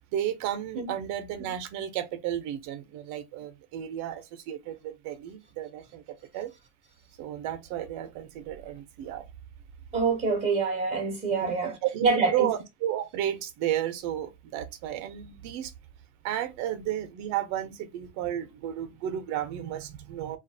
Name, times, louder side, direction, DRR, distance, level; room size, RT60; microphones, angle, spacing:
voice 1, 0.1-6.5 7.2-9.2 11.4-15.7 16.2-20.4, right 11 dB, 55° right, 0.8 m, -33 dB
voice 2, 9.9-11.7 12.0-12.5, right 4 dB, 20° right, 0.8 m, -26 dB
2.5 x 2.4 x 2.6 m
supercardioid pair, 140°, 36 cm